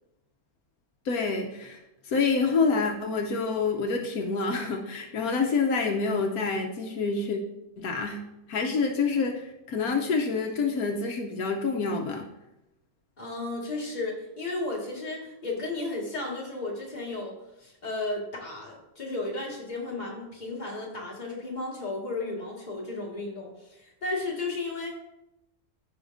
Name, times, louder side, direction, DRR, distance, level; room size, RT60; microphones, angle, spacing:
voice 1, 1.0-7.4 7.8-12.3, left 4 dB, 80° left, 2 dB, 1.3 m, -27 dB
voice 2, 13.2-24.9, left 2 dB, 30° left, -4 dB, 2.1 m, -34 dB
15.0 x 5.2 x 2.6 m, 0.89 s
omnidirectional pair, 1.6 m